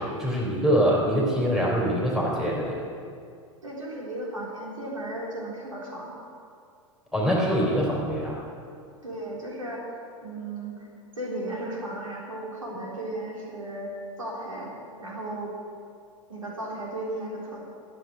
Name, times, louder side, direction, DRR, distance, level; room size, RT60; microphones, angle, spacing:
voice 1, 0.0-2.8 7.1-8.4, equal, ahead, -4 dB, 3.6 m, -24 dB
voice 2, 3.6-6.1 9.0-9.8 10.2-10.9 11.2-13.9 14.2-14.7 15.0-15.5 16.3-17.6, right 1 dB, 80° right, -3 dB, 3.7 m, -35 dB
13.5 x 7.7 x 9.9 m, 2.4 s
figure-of-eight pair, 85°, 17 cm